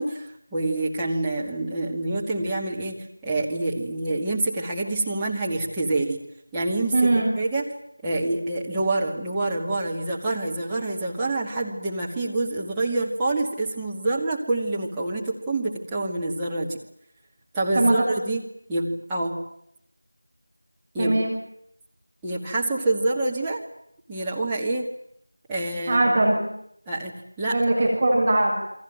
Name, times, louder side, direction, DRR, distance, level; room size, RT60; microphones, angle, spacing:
voice 1, 0.0-6.2 6.5-7.7 8.0-16.8 17.5-18.4 18.7-19.4 20.9-21.1 22.2-23.6 24.1-24.9 25.5-26.0 26.9-27.6, right 2 dB, 5° right, -6 dB, 2.2 m, -27 dB
voice 2, 6.9-7.3 17.7-18.0 21.0-21.3 25.9-26.4 27.5-28.5, right 2 dB, 25° right, -2 dB, 6.6 m, -20 dB
29.0 x 23.0 x 9.0 m, 0.73 s
figure-of-eight pair, 170°, 0 cm